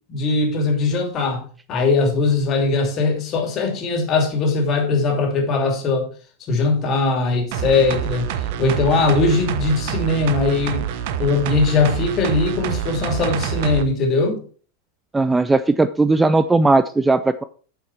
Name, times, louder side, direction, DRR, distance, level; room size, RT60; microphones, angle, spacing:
voice 1, 0.1-6.1 6.5-10.9 11.2-14.4, left 3 dB, 30° left, 2.9 m, -20 dB
sound 1, 7.5-13.8 14.2-14.3, right 10 dB, 50° right, 1.0 m, -26 dB
voice 2, 15.1-17.4, right 3 dB, 10° right, 0.5 m, -17 dB
9.4 x 7.2 x 4.5 m
figure-of-eight pair, 90°, 0 cm